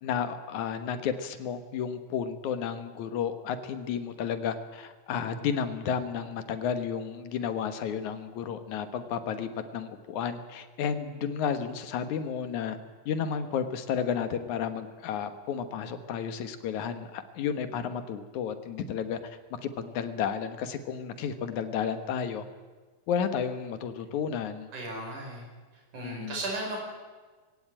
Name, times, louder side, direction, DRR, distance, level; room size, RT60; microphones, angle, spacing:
voice 1, 0.0-12.8 13.1-22.4 23.1-24.7 26.0-26.4, left 7 dB, 80° left, 10 dB, 2.7 m, -32 dB
voice 2, 24.7-25.5 25.9-26.8, right 2 dB, 90° right, -1 dB, 7.0 m, -35 dB
21.5 x 17.0 x 9.0 m, 1.3 s
omnidirectional pair, 3.4 m